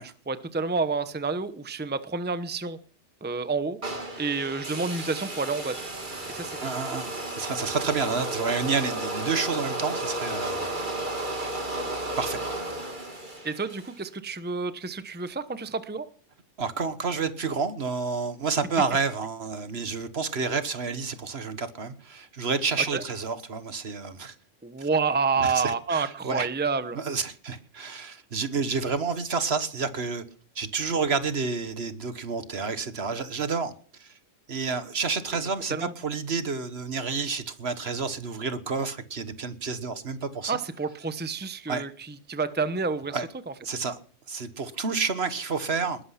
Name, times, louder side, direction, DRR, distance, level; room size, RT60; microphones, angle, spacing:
voice 1, 0.0-2.8 3.2-3.8 4.2-5.7 6.3-6.5 13.4-16.1 22.9-23.0 24.6-27.0 35.7-35.9 40.5-43.2, right 4 dB, 10° right, 0.9 m, -29 dB
sound 1, 3.8-14.0, right 1 dB, 40° right, 2.8 m, -33 dB
voice 2, 6.6-10.7 12.2-12.4 16.6-24.3 24.8-24.9 25.4-26.5 26.9-30.2 30.5-33.7 34.0-34.1 34.5-40.6 41.7-41.8 43.1-43.3 43.6-44.0 44.3-46.0, right 5 dB, 55° right, 1.5 m, -29 dB
20.5 x 11.5 x 5.8 m
omnidirectional pair, 1.3 m